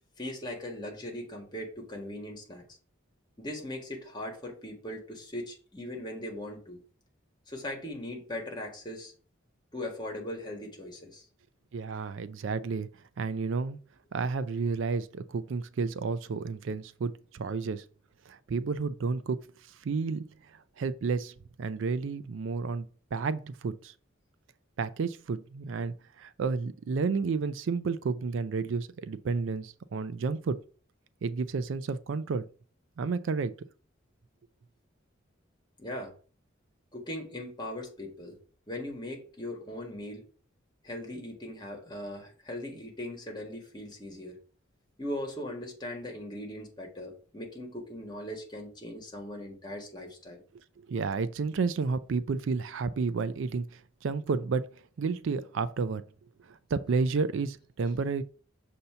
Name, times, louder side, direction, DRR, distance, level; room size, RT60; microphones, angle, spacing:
voice 1, 0.2-2.6 3.4-6.8 7.5-9.1 9.7-11.2 35.8-36.1 36.9-38.4 38.7-40.2 40.8-44.4 45.0-50.4, left 1 dB, 20° left, 1.6 m, -39 dB
voice 2, 11.7-12.9 13.2-13.8 14.1-17.8 18.3-19.4 19.8-20.3 20.8-22.9 23.1-23.9 24.8-30.6 31.2-32.5 33.0-33.5 50.8-54.7 55.0-56.0 56.5-58.2, right 4 dB, 65° right, 0.4 m, -31 dB
6.6 x 2.8 x 5.5 m
head